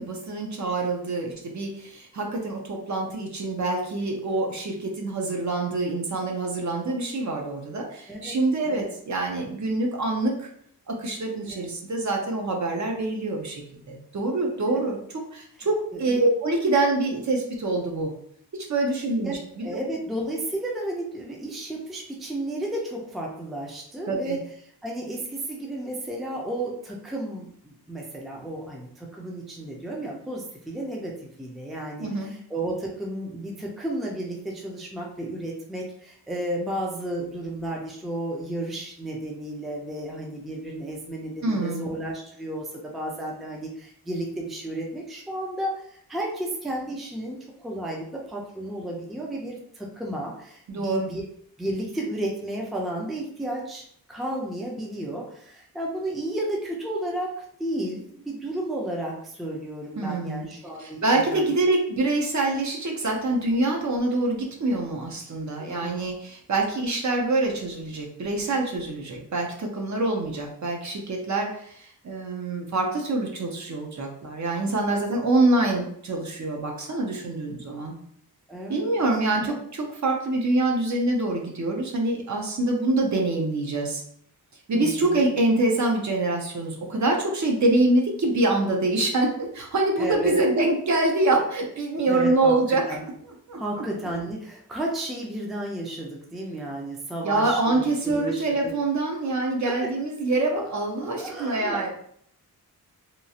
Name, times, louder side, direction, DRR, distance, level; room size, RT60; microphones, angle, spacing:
voice 1, 0.0-10.5 10.9-18.1 18.5-19.8 24.1-24.4 32.0-32.3 41.4-41.9 50.7-51.1 60.0-60.5 60.8-77.9 78.7-84.0 84.7-92.9 93.5-93.6 97.2-101.9, right 2 dB, 50° right, 1 dB, 0.6 m, -25 dB
voice 2, 19.6-24.4 24.8-51.2 51.6-61.5 65.6-66.0 78.5-78.9 79.3-79.6 84.7-85.3 90.0-90.4 92.1-92.5 92.9-93.0 93.6-98.7 99.6-99.9 101.2-101.9, right 1 dB, ahead, -1 dB, 0.4 m, -33 dB
3.0 x 2.4 x 2.7 m, 0.65 s
wide cardioid pair, 150°, 37 cm